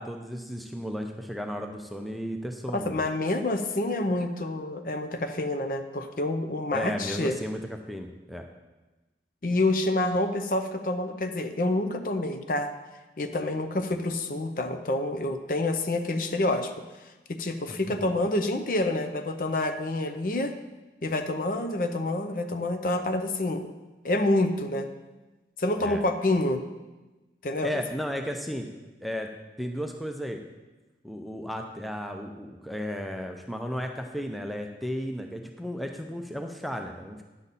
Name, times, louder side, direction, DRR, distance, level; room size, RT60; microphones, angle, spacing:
voice 1, 0.0-3.0 6.7-7.6 7.9-8.4 17.7-18.1 25.8-26.0 27.6-28.7 29.0-29.3 29.6-30.4 31.0-37.2, equal, ahead, 3 dB, 0.5 m, -34 dB
voice 2, 2.7-7.3 9.4-12.7 13.2-16.7 17.3-20.5 21.0-23.6 24.0-24.9 25.6-26.6 27.4-27.8, left 2 dB, 50° left, 7 dB, 0.6 m, -27 dB
10.0 x 7.0 x 4.1 m, 1.1 s
head